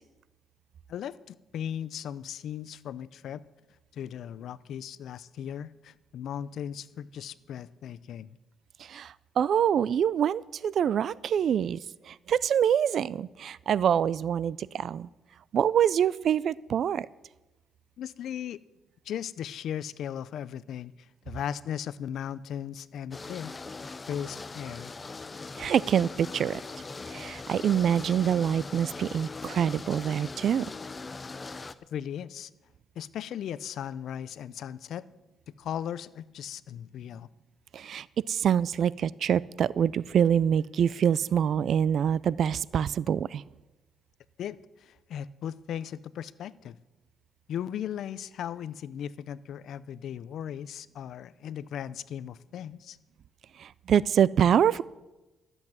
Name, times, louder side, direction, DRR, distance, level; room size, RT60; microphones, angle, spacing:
voice 1, 0.9-3.4 3.9-8.3 18.0-18.6 19.1-20.9 21.3-23.5 24.1-24.9 31.9-32.5 33.0-35.0 35.6-37.3 44.4-46.8 47.5-53.0, left 9 dB, 70° left, 18 dB, 0.5 m, -37 dB
voice 2, 8.9-11.8 12.1-15.1 15.5-17.1 25.6-26.6 27.1-30.7 37.7-43.4 53.6-54.8, right 8 dB, 60° right, 21 dB, 0.3 m, -25 dB
sound 1, 23.1-31.7, left 3 dB, 25° left, 0.6 m, -40 dB
13.0 x 8.0 x 7.3 m, 1.1 s
cardioid pair, 90°, 0 cm